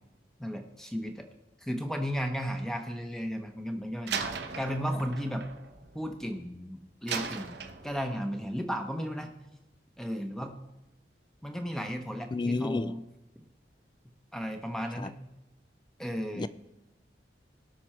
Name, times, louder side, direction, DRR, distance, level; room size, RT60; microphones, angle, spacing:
voice 1, 0.4-1.3 1.6-4.2 4.6-5.4 5.9-9.3 10.0-10.6 11.4-13.0 14.3-15.2 16.0-16.5, equal, 5° left, 0.9 m, -34 dB
Slam, 4.1-6.5 7.1-8.3, right 6 dB, 70° right, 0.9 m, -38 dB
voice 2, 12.3-12.9 15.0-15.1 16.4-16.5, left 3 dB, 25° left, 0.3 m, -30 dB
18.0 x 6.1 x 4.4 m
head